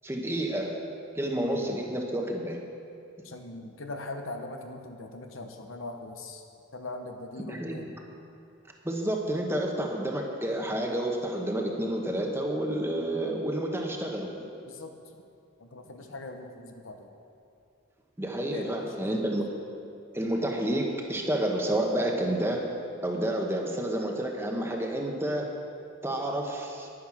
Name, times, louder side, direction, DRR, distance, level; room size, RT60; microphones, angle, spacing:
voice 1, 0.0-0.7 1.1-2.6 7.5-7.8 8.8-14.3 18.2-19.5 20.1-22.6 23.0-25.5 26.0-26.9, right 1 dB, 10° right, 1 dB, 1.1 m, -29 dB
voice 2, 1.3-1.8 3.2-6.4 6.7-7.9 14.6-14.9 15.6-17.1 18.5-19.3, left 2 dB, 80° left, 5 dB, 1.1 m, -41 dB
10.5 x 9.7 x 6.2 m, 2.5 s
head